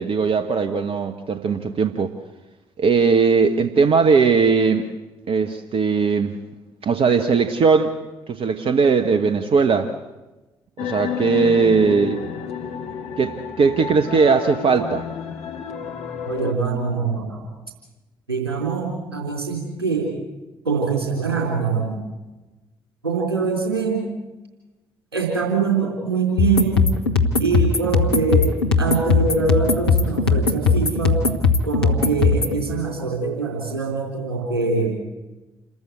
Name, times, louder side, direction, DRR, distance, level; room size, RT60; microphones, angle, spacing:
voice 1, 0.0-2.1 2.8-4.9 5.3-6.3 6.8-7.9 8.3-9.9 10.8-12.2 13.2-15.1, right 5 dB, 50° right, 7 dB, 1.3 m, -19 dB
sound 1, 10.8-16.5, left 7 dB, 60° left, 1.6 m, -30 dB
voice 2, 16.3-17.5 18.3-20.1 20.6-22.0 23.0-24.0 25.1-26.8 27.4-31.2 31.6-34.9, right 4 dB, 85° right, 0 dB, 3.9 m, -23 dB
sound 2, 26.4-32.6, left 4 dB, 85° left, 1.3 m, -19 dB
28.0 x 14.0 x 8.2 m, 1.1 s
figure-of-eight pair, 40°, 13 cm